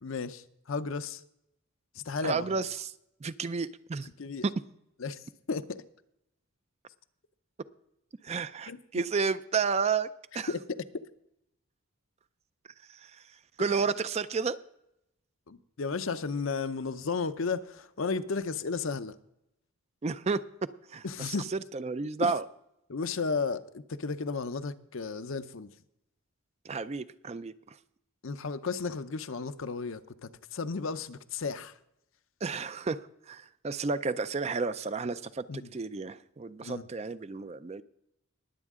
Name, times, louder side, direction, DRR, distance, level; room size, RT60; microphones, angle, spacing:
voice 1, 0.0-1.2 1.9-2.6 4.2-4.5 5.0-5.8 8.7-8.8 10.5-10.6 13.6-13.7 15.5-19.2 21.0-21.5 22.2-22.3 22.9-25.7 28.2-31.8 35.5-35.7 36.6-36.9, left 4 dB, 65° left, 12 dB, 0.6 m, -34 dB
voice 2, 2.2-2.9 3.2-4.1 8.2-10.1 10.3-10.5 12.9-14.6 20.0-20.4 20.9-22.5 26.6-27.8 32.4-33.0 33.3-35.5 35.7-37.8, right 5 dB, 30° right, 13 dB, 0.4 m, -32 dB
20.5 x 8.2 x 3.7 m, 0.80 s
head